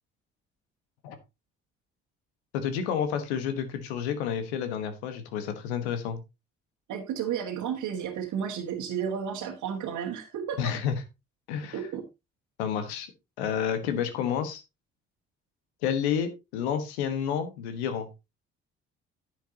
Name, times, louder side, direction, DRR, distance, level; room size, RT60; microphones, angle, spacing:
voice 1, 2.5-6.2 10.6-10.9 11.5-11.8 12.6-13.1 13.4-14.6 15.8-18.1, left 8 dB, 85° left, 9 dB, 1.3 m, -30 dB
voice 2, 6.9-10.7 11.7-12.0, right 8 dB, 65° right, 1 dB, 1.7 m, -32 dB
10.5 x 8.3 x 2.8 m, 0.24 s
hypercardioid pair, 50°, 32 cm